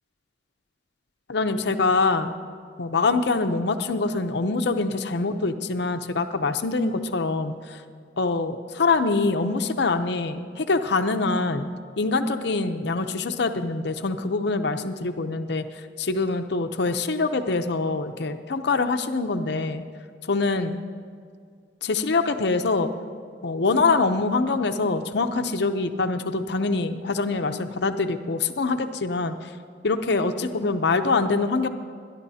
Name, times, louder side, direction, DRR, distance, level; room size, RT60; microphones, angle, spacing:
voice 1, 1.3-2.3 2.8-7.5 8.2-11.7 12.0-15.6 16.0-19.8 20.3-20.8 21.8-22.9 23.4-29.3 29.8-31.7, left 3 dB, 65° left, 8 dB, 0.7 m, -24 dB
30.0 x 11.5 x 2.8 m, 2.1 s
head